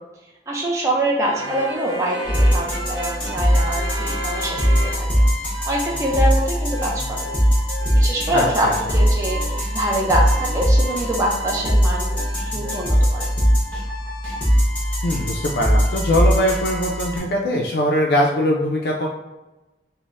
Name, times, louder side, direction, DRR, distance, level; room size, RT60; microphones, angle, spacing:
voice 1, 0.5-5.1 5.7-7.3 7.9-12.1 12.5-13.3, right 1 dB, 15° right, -2 dB, 0.3 m, -24 dB
sound 1, 1.2-5.3 5.5-13.2, right 1 dB, 80° right, 0.6 m, -35 dB
sound 2, 2.2-17.2, equal, 5° left, 0.9 m, -21 dB
voice 2, 8.3-8.8 15.0-19.1, left 1 dB, 60° left, -1 dB, 0.3 m, -21 dB
3.9 x 2.0 x 2.4 m, 1.1 s
head